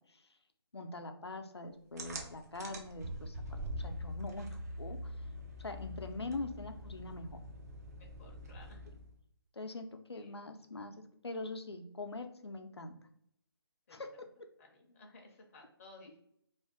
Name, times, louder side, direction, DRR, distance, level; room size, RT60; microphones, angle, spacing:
voice 1, 0.7-5.1 5.6-7.4 9.5-10.9 11.2-13.0 13.9-14.3, left 2 dB, 90° left, 6 dB, 0.5 m, -43 dB
sound 1, 2.0-9.1, equal, 40° right, 0.5 m, -44 dB
voice 2, 7.9-8.8 10.1-10.6 13.9-14.0 14.6-16.2, left 2 dB, 35° left, 1 dB, 0.5 m, -57 dB
2.5 x 2.3 x 3.5 m, 0.72 s
figure-of-eight pair, 150°, 13 cm